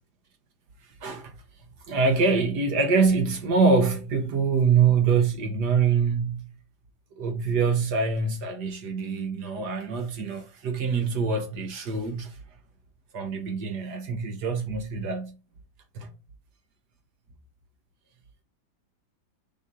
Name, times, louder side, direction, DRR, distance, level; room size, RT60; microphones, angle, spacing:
voice 1, 1.0-1.3 1.9-6.5 7.2-12.4 13.1-15.4 15.9-16.1, right 5 dB, 60° right, 1.5 m, -24 dB
7.4 x 3.0 x 5.4 m
omnidirectional pair, 2.1 m